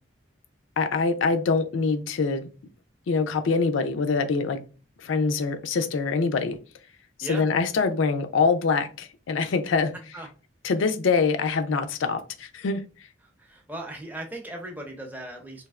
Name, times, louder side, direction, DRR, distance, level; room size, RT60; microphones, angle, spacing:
voice 1, 0.8-2.5 3.1-4.6 5.0-6.6 7.3-9.9 10.6-12.8, left 4 dB, 90° left, 0.4 m, -24 dB
voice 2, 13.2-15.7, right 1 dB, 10° right, 0.5 m, -38 dB
3.2 x 2.7 x 2.3 m
head